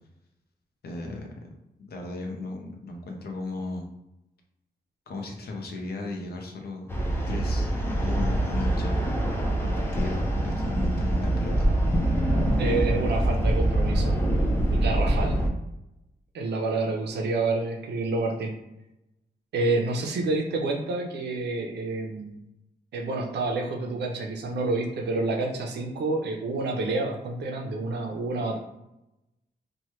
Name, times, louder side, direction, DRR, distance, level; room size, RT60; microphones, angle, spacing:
voice 1, 0.8-1.5 1.8-3.9 5.1-6.9 7.3-9.0 9.6-11.6, left 2 dB, 70° left, 2 dB, 0.6 m, -36 dB
sound 1, 6.9-15.5, right 1 dB, 15° left, 0.4 m, -24 dB
voice 2, 12.6-14.2 14.7-15.4 16.3-18.5 19.5-22.4 22.9-28.6, right 3 dB, 90° right, 1 dB, 0.5 m, -28 dB
3.0 x 2.2 x 3.0 m, 0.88 s
wide cardioid pair, 175°, 17 cm